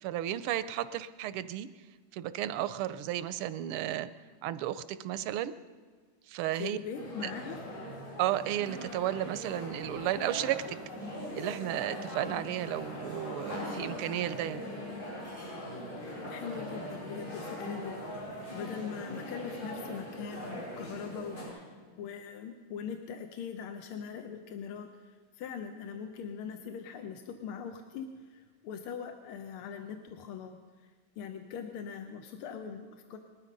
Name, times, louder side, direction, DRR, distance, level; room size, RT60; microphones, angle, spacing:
voice 1, 0.0-1.7 2.1-4.1 4.4-5.5 6.3-6.8 7.2-7.3 8.2-10.8 11.3-14.6, right 12 dB, 90° right, 14 dB, 1.5 m, -33 dB
voice 2, 6.5-7.6 16.3-30.9 31.2-33.2, left 7 dB, 85° left, 6 dB, 1.8 m, -42 dB
sound 1, 6.9-21.5, left 1 dB, 70° left, 6.5 m, -41 dB
20.0 x 12.5 x 5.3 m, 1.5 s
omnidirectional pair, 2.3 m